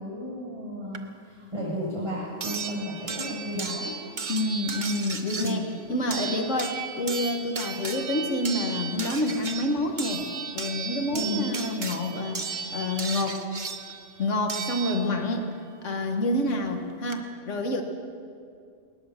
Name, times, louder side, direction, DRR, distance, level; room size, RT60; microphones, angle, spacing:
voice 1, 0.0-4.0 5.4-5.7 11.1-11.5, equal, 20° right, -6 dB, 7.2 m, -33 dB
sound 1, 0.9-1.0 2.4-15.4 16.7-16.8 17.1-17.2, right 5 dB, 40° right, 1.4 m, -35 dB
voice 2, 4.3-10.2 10.5-13.4 14.2-15.5 15.8-17.8, left 1 dB, 75° left, 3 dB, 2.0 m, -28 dB
20.0 x 19.5 x 7.4 m, 2.3 s
omnidirectional pair, 1.3 m